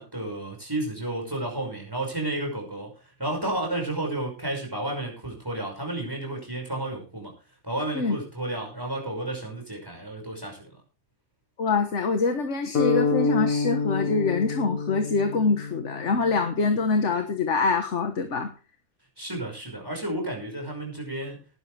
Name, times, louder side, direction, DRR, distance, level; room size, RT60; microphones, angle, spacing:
voice 1, 0.0-2.9 3.2-7.3 7.6-10.7 19.2-21.4, right 1 dB, 15° right, 1 dB, 5.6 m, -32 dB
voice 2, 11.6-18.5, left 4 dB, 60° left, 6 dB, 1.7 m, -25 dB
sound 1, 12.7-16.7, left 4 dB, 80° left, 2.2 m, -27 dB
18.5 x 11.0 x 3.4 m, 0.35 s
omnidirectional pair, 1.4 m